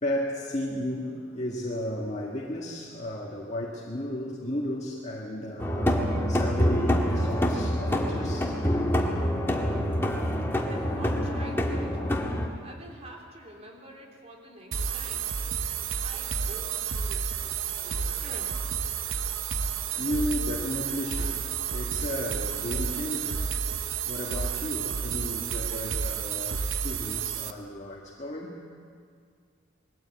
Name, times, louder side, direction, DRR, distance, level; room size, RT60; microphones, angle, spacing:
voice 1, 0.0-6.0 6.3-9.0 10.6-10.7 20.0-23.5 24.1-28.6, left 1 dB, 35° left, -3 dB, 1.7 m, -34 dB
sound 1, 5.6-12.5, equal, 10° left, 1.7 m, -26 dB
voice 2, 10.5-12.2 12.6-15.3 15.9-18.7, right 1 dB, 35° right, 0 dB, 3.3 m, -46 dB
sound 2, 14.7-27.5, right 7 dB, 80° right, 0.9 m, -31 dB
21.5 x 14.5 x 8.9 m, 2.1 s
head